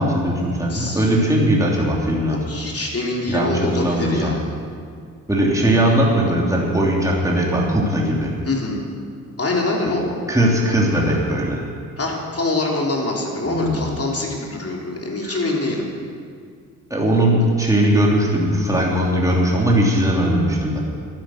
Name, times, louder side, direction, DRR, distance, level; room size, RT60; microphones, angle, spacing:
voice 1, 0.0-2.4 3.3-4.4 5.3-8.3 9.9-10.0 10.3-11.6 13.5-13.9 15.2-15.4 16.9-20.8, right 1 dB, 10° right, -4 dB, 3.0 m, -19 dB
voice 2, 0.7-1.0 2.5-4.5 8.5-8.8 9.4-10.0 12.0-15.9, left 2 dB, 35° left, -1 dB, 3.4 m, -24 dB
11.5 x 9.3 x 7.8 m, 2.1 s
hypercardioid pair, 45°, 39 cm